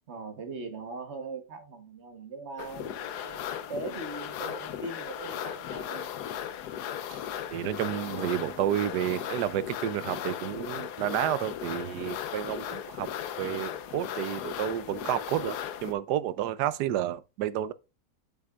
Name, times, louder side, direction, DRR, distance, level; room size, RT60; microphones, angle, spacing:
voice 1, 0.1-6.1, right 3 dB, 45° right, 1.3 m, -40 dB
sound 1, 2.6-15.9, left 10 dB, 85° left, 1.2 m, -37 dB
voice 2, 7.5-13.1 13.4-15.6 15.8-17.7, right 12 dB, 90° right, 1.2 m, -30 dB
8.1 x 7.7 x 2.4 m
omnidirectional pair, 1.7 m